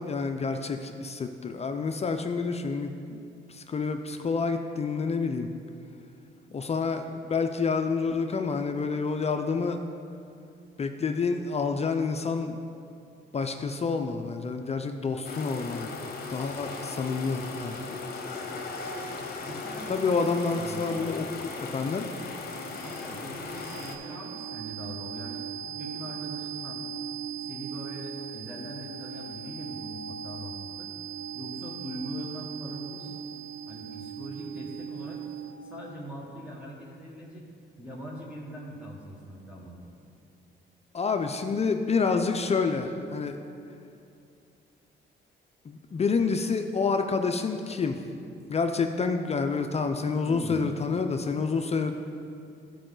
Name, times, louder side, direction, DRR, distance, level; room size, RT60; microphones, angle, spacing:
voice 1, 0.0-3.2 3.5-5.5 6.5-9.8 10.8-12.6 13.3-15.9 16.3-17.8 19.9-22.1 40.9-43.4 45.6-48.1 48.5-51.9, left 4 dB, 30° left, 6 dB, 0.5 m, -28 dB
sound 1, 15.2-24.0, left 3 dB, 50° left, 1.0 m, -37 dB
voice 2, 19.4-20.2 20.5-20.9 22.8-26.8 27.4-30.9 31.3-33.1 33.7-35.2 35.7-37.4 37.8-39.8 50.3-50.6, equal, 5° right, -5 dB, 1.3 m, -41 dB
sound 2, 21.9-35.8, right 8 dB, 60° right, 0.6 m, -39 dB
12.0 x 4.9 x 3.8 m, 2.5 s
cardioid pair, 90°, 20 cm